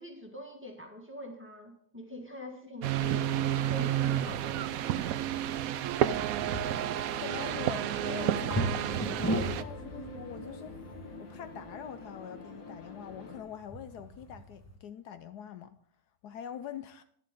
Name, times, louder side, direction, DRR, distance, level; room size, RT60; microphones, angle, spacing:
voice 1, 0.0-4.6, left 1 dB, 5° right, 1 dB, 1.6 m, -45 dB
sound 1, 2.8-9.6, right 11 dB, 70° right, 0.9 m, -30 dB
sound 2, 6.1-14.8, equal, 10° left, 1.0 m, -38 dB
voice 2, 7.1-10.7 11.2-15.8 16.2-17.0, left 9 dB, 70° left, 10 dB, 1.1 m, -44 dB
sound 3, 7.9-13.4, left 2 dB, 50° left, 1.9 m, -46 dB
11.0 x 11.0 x 3.7 m, 0.62 s
omnidirectional pair, 1.8 m